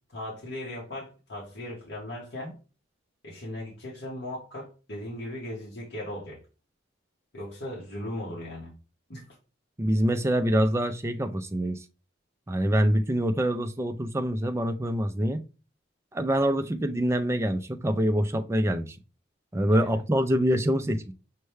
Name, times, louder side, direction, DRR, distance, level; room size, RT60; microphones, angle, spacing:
voice 1, 0.1-2.5 3.2-6.4 7.3-8.7 9.1-9.4 19.7-20.0, left 1 dB, 60° left, 1.3 m, -38 dB
voice 2, 9.8-11.8 12.5-15.4 16.1-19.0 19.5-21.1, equal, 15° right, 0.4 m, -25 dB
6.3 x 2.2 x 3.2 m
head